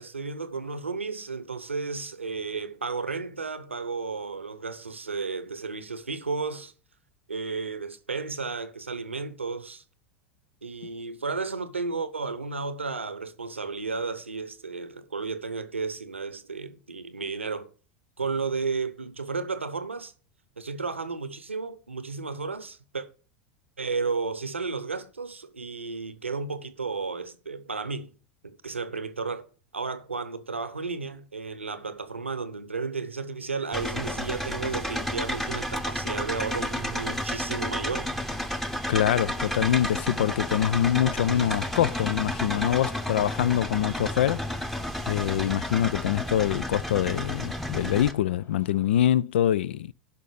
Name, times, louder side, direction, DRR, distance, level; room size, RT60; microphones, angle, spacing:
voice 1, 0.0-6.7 7.3-9.8 10.6-17.7 18.2-20.1 20.6-23.1 23.8-28.1 28.4-29.5 29.7-38.1, right 4 dB, 85° right, 0.9 m, -33 dB
sound 1, 33.7-48.1, equal, 5° left, 0.9 m, -31 dB
sound 2, 36.6-49.1, left 5 dB, 40° left, 3.2 m, -55 dB
voice 2, 38.9-44.5 45.1-49.9, left 11 dB, 65° left, 0.4 m, -24 dB
12.0 x 5.7 x 4.9 m
figure-of-eight pair, 85°, 6 cm